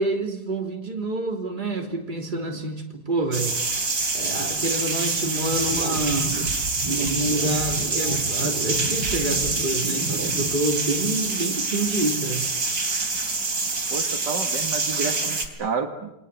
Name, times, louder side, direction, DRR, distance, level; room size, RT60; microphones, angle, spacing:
voice 1, 0.0-3.6 4.1-6.4 6.8-12.5, right 2 dB, 25° right, 3 dB, 3.2 m, -27 dB
sound 1, 3.3-15.5, right 3 dB, 45° right, 3.7 m, -26 dB
sound 2, 5.5-10.5, right 3 dB, 85° right, 2.9 m, -32 dB
voice 2, 13.9-16.1, right 5 dB, 70° right, 3 dB, 2.3 m, -30 dB
28.5 x 21.5 x 8.2 m, 0.91 s
omnidirectional pair, 1.9 m